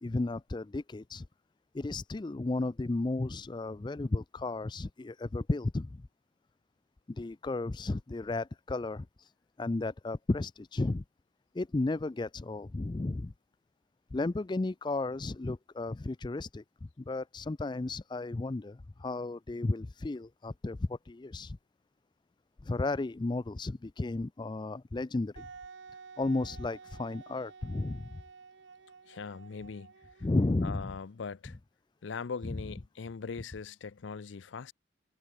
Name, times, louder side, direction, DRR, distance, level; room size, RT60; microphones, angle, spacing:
voice 1, 0.0-1.3 1.7-6.0 7.1-9.3 9.6-11.0 11.5-13.3 14.1-21.6 22.6-25.5 26.2-28.2 30.2-30.9, left 2 dB, 25° left, 0.4 m, -33 dB
Wind instrument woodwind instrument, 25.4-30.9, right 5 dB, 70° right, 0.8 m, -52 dB
voice 2, 29.1-29.9 30.6-31.6 32.0-34.7, left 5 dB, 80° left, 0.5 m, -40 dB
head